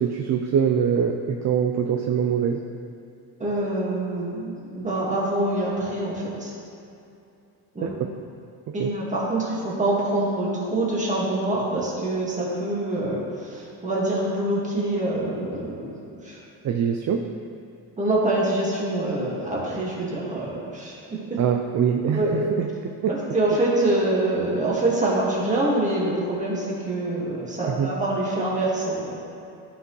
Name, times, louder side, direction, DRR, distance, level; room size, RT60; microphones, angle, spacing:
voice 1, 0.0-2.6 7.8-7.9 8.8-8.9 16.6-17.3 21.4-23.2 27.7-27.9, right 7 dB, 45° right, 4 dB, 0.5 m, -24 dB
voice 2, 3.4-6.5 7.7-7.9 8.7-16.0 16.2-16.4 18.0-21.0 22.1-22.3 23.1-29.2, right 1 dB, 15° right, -5 dB, 1.9 m, -25 dB
13.0 x 5.9 x 3.2 m, 2.6 s
cardioid pair, 145°, 42 cm